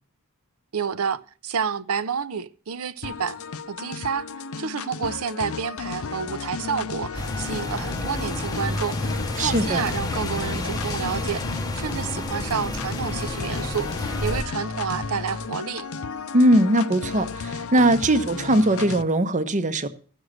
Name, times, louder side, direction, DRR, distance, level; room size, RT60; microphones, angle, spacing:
voice 1, 0.7-3.4 3.7-4.3 4.6-15.9, right 6 dB, 70° right, 0.6 m, -29 dB
sound 1, 3.0-19.0, left 5 dB, 65° left, 0.6 m, -34 dB
sound 2, 7.1-14.4, left 2 dB, 15° left, 0.7 m, -30 dB
voice 2, 9.4-9.8 16.3-19.9, right 1 dB, 35° right, 0.8 m, -20 dB
14.5 x 6.3 x 6.4 m
head